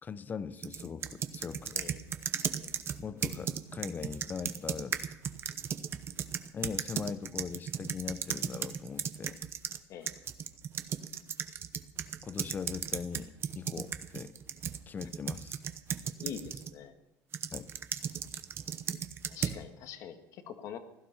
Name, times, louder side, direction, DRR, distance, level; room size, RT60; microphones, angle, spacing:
voice 1, 0.0-1.8 3.0-5.0 6.5-9.4 12.2-14.4 14.9-15.6 17.5-17.7, left 6 dB, 30° left, 15 dB, 0.8 m, -40 dB
sound 1, 0.6-9.8 10.1-16.7 17.3-19.6, right 8 dB, 40° right, 0.9 m, -36 dB
voice 2, 1.7-2.1 2.6-2.7 9.9-10.1 16.2-16.9 19.3-20.8, left 8 dB, 65° left, 8 dB, 1.6 m, -44 dB
16.5 x 12.0 x 5.8 m, 0.97 s
cardioid pair, 115°, 6 cm